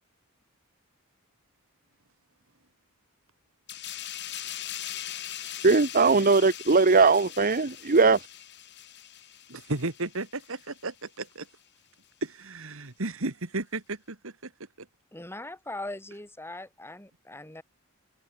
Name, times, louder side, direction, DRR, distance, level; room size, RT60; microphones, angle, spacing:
sound 1, 3.7-10.9 11.2-11.4, left 12 dB, 55° left, 2.8 m, -41 dB
voice 1, 5.6-8.2, right 4 dB, 40° right, 1.1 m, -20 dB
voice 2, 9.5-11.5 12.3-14.5, right 2 dB, 70° right, 2.1 m, -34 dB
voice 3, 15.1-17.6, left 2 dB, 10° left, 6.9 m, -40 dB
head